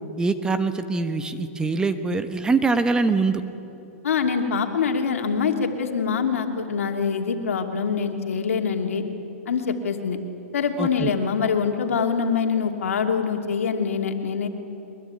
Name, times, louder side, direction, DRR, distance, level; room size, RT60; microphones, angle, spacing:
voice 1, 0.2-3.4 10.8-11.1, right 3 dB, 10° right, 9 dB, 1.2 m, -23 dB
voice 2, 4.0-9.0 9.5-10.2 10.5-14.5, left 6 dB, 80° left, 4 dB, 2.8 m, -24 dB
23.0 x 21.5 x 9.7 m, 2.9 s
hypercardioid pair, 135°, 7 cm